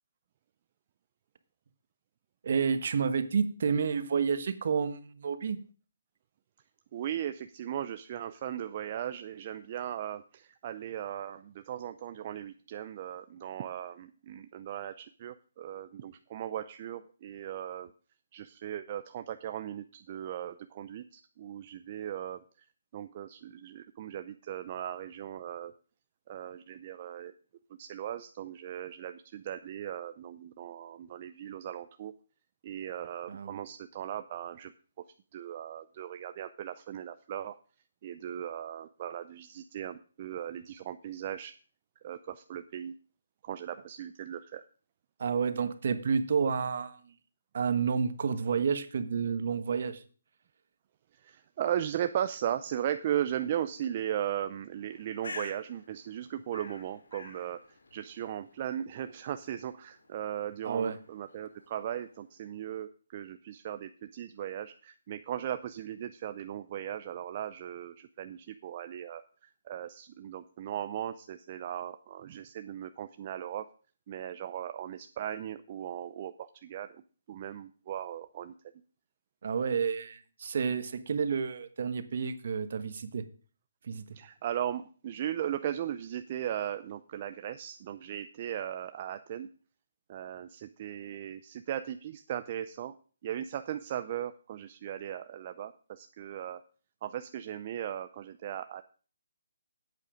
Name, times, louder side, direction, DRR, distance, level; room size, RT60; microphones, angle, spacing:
voice 1, 2.4-5.6 33.3-33.6 45.2-47.1 47.5-50.0 60.6-61.0 79.4-83.2 83.8-84.1, right 6 dB, 55° right, 10 dB, 1.3 m, -30 dB
voice 2, 6.9-17.9 18.3-22.7 22.9-25.7 26.3-27.3 27.8-32.1 32.6-34.7 35.3-37.6 38.0-41.5 42.0-42.9 43.4-44.6 51.1-57.6 57.9-69.2 69.6-73.6 74.1-77.0 77.3-78.5 84.1-89.5 90.1-93.0 93.2-96.6 97.0-98.8, right 10 dB, 35° right, 10 dB, 0.5 m, -37 dB
Bird, 54.8-62.4, left 3 dB, 85° left, 2.6 m, -50 dB
8.8 x 8.3 x 6.3 m, 0.40 s
hypercardioid pair, 160°, 0 cm